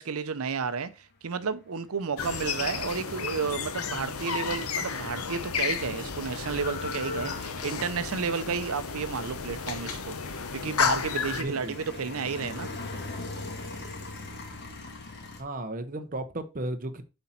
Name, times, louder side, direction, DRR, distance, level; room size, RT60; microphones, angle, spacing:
voice 1, 0.0-12.7, right 5 dB, 75° right, 0.6 m, -32 dB
sound 1, 2.2-11.4, left 6 dB, 80° left, 0.9 m, -32 dB
sound 2, 6.0-15.4, left 3 dB, 50° left, 1.6 m, -41 dB
voice 2, 11.4-11.8 15.4-17.0, right 1 dB, 40° right, 0.8 m, -34 dB
8.0 x 4.4 x 4.2 m
head